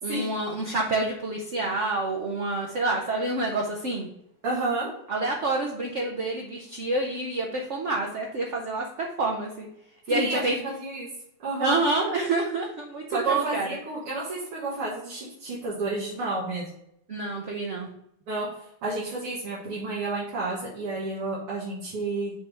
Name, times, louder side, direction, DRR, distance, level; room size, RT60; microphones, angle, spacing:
voice 1, 0.0-4.1 5.1-9.7 10.1-10.6 11.6-13.7 17.1-17.9, right 2 dB, 60° right, 0 dB, 0.7 m, -28 dB
voice 2, 4.4-4.9 10.1-11.1 11.4-11.8 13.1-16.7 18.3-18.5 18.8-22.3, right 2 dB, 85° right, -6 dB, 2.6 m, -31 dB
6.8 x 3.5 x 5.3 m, 0.76 s
omnidirectional pair, 2.4 m